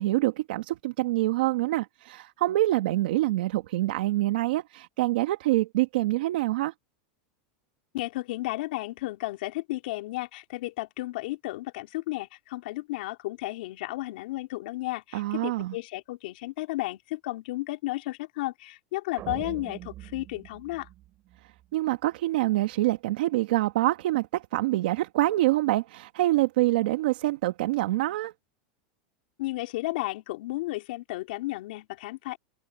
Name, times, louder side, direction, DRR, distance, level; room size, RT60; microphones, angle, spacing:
voice 1, 0.0-6.7 15.1-15.7 21.7-28.3, right 17 dB, 80° right, 1.6 m, -26 dB
voice 2, 7.9-20.9 29.4-32.4, left 19 dB, 75° left, 3.4 m, -33 dB
sound 1, 19.2-21.6, right 15 dB, 40° right, 4.0 m, -42 dB
supercardioid pair, 130°, 5 cm